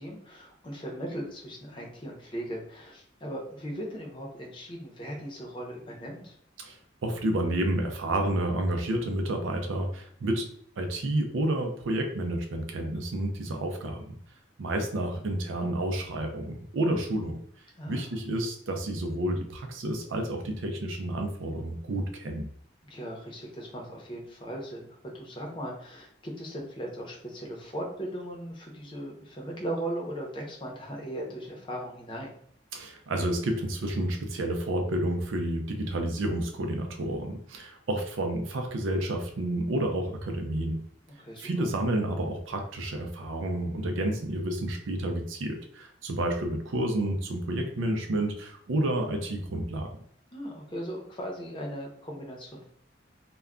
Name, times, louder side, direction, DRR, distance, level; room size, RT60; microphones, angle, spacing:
voice 1, 0.0-6.4 17.8-18.1 22.8-24.9 25.1-32.3 41.2-41.7 50.3-52.6, right 1 dB, 25° left, -1 dB, 0.7 m, -38 dB
voice 2, 6.6-10.5 10.8-14.2 14.6-17.4 17.9-22.5 32.7-40.8 41.4-49.9, right 1 dB, 85° right, 4 dB, 0.5 m, -30 dB
2.2 x 2.2 x 3.6 m, 0.65 s
head